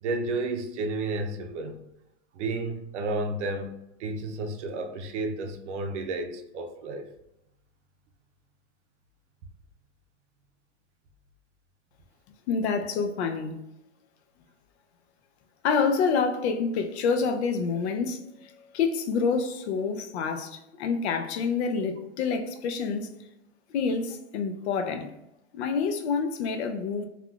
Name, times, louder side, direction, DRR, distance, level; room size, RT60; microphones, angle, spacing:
voice 1, 0.0-1.8 2.3-7.1, right 2 dB, 80° right, 0.6 m, -32 dB
voice 2, 12.5-13.6 15.6-23.2 23.7-25.1 25.5-27.0, left 5 dB, 65° left, 0.5 m, -27 dB
3.4 x 2.4 x 2.3 m
supercardioid pair, 145°, 35 cm